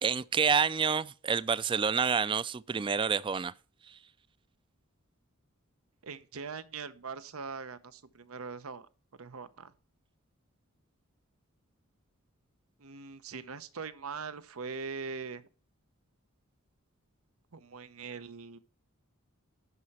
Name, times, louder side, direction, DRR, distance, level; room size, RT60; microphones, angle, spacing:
voice 1, 0.0-3.5 3.9-4.0, right 6 dB, 25° right, 0.3 m, -28 dB
voice 2, 6.0-8.9 9.2-9.7 12.8-15.4 17.5-18.6, right 5 dB, 90° right, 0.8 m, -41 dB
11.0 x 5.8 x 4.2 m
head